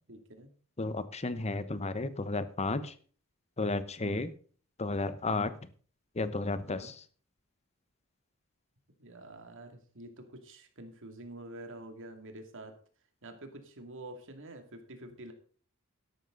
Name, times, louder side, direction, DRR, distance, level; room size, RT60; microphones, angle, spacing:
voice 1, 0.1-0.5 4.0-4.3 5.3-5.5 6.6-6.9 9.0-12.7 13.2-15.3, right 1 dB, 60° right, 5 dB, 2.6 m, -47 dB
voice 2, 0.8-2.9 3.6-4.3 4.8-5.5 6.2-7.0, left 3 dB, 30° left, 13 dB, 1.0 m, -33 dB
13.0 x 11.5 x 3.9 m, 0.42 s
head